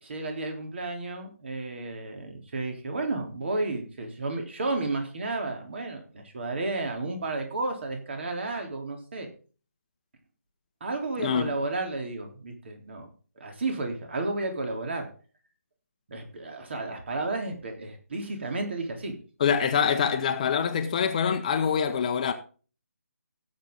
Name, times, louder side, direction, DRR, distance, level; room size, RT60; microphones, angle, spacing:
voice 1, 0.0-9.3 10.8-13.1 13.4-15.1 16.1-19.1, right 2 dB, 45° right, 3.6 m, -32 dB
voice 2, 19.4-22.3, left 7 dB, 30° left, 1.0 m, -25 dB
16.5 x 7.6 x 3.9 m
figure-of-eight pair, 160°, 8 cm